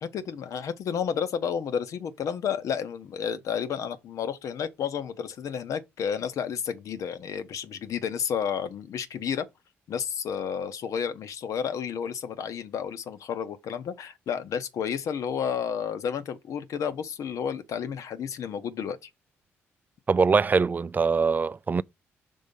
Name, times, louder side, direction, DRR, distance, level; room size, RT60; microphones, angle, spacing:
voice 1, 0.0-9.5 9.9-19.1, left 7 dB, 65° left, 0.7 m, -31 dB
voice 2, 20.1-21.8, right 4 dB, 30° right, 0.3 m, -23 dB
5.4 x 3.5 x 5.3 m
hypercardioid pair, 50°, 6 cm